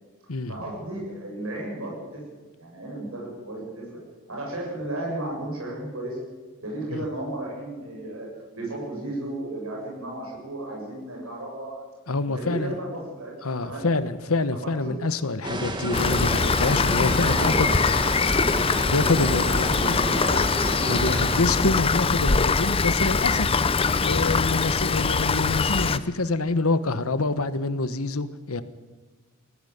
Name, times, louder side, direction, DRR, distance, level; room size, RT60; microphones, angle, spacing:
voice 1, 0.5-2.2 2.6-3.8 4.3-6.2 6.6-8.3 8.6-11.8 12.3-13.3 13.6-13.8 14.5-15.0 15.5-15.6 17.1-17.7 17.9-18.1 19.3-20.3 22.1-22.3, right 1 dB, 75° right, -2 dB, 7.8 m, -34 dB
voice 2, 12.1-12.8 13.4-17.7 18.9-20.0 20.3-20.4 20.9-23.6 24.0-28.6, left 3 dB, 75° left, 12 dB, 1.2 m, -26 dB
sound 1, 15.4-21.4, right 1 dB, 20° right, 1.8 m, -30 dB
Rain, 15.9-26.0, left 4 dB, 25° left, 0.6 m, -23 dB
19.0 x 14.5 x 9.3 m, 1.3 s
head